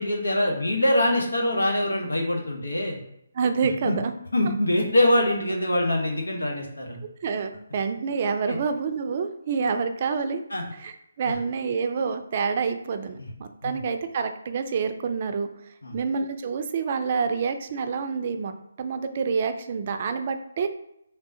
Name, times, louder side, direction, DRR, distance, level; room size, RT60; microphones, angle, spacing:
voice 1, 0.0-3.0 3.8-4.0 4.3-7.0 8.5-8.6 10.5-10.6 11.2-11.3 13.2-13.3 13.6-13.8 15.8-16.0, left 1 dB, 85° left, 0 dB, 1.1 m, -24 dB
voice 2, 3.3-4.1 7.2-10.4 10.8-15.5 15.9-20.7, right 5 dB, 40° right, 7 dB, 0.4 m, -27 dB
3.8 x 3.5 x 2.8 m, 0.78 s
figure-of-eight pair, 150°, 0 cm